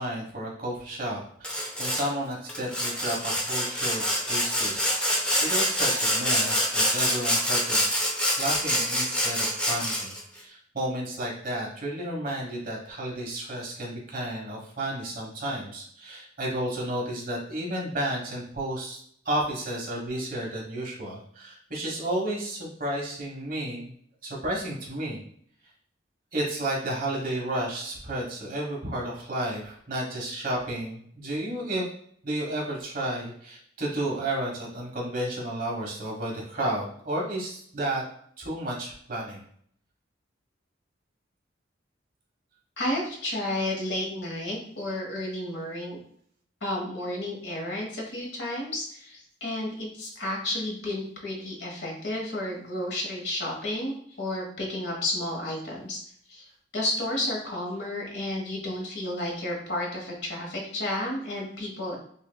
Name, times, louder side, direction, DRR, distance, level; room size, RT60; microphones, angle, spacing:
voice 1, 0.0-8.0 8.4-19.0 19.2-23.9 24.2-25.2 26.3-31.8 32.2-38.0 38.4-39.4, right 1 dB, 50° right, -2 dB, 1.1 m, -32 dB
Sawing, 1.4-2.1 2.5-10.2, equal, 5° left, 0.6 m, -26 dB
voice 2, 42.8-46.0 46.6-56.0 56.3-56.4 56.7-62.0, left 1 dB, 65° left, -1 dB, 1.2 m, -32 dB
5.5 x 2.5 x 2.2 m, 0.63 s
head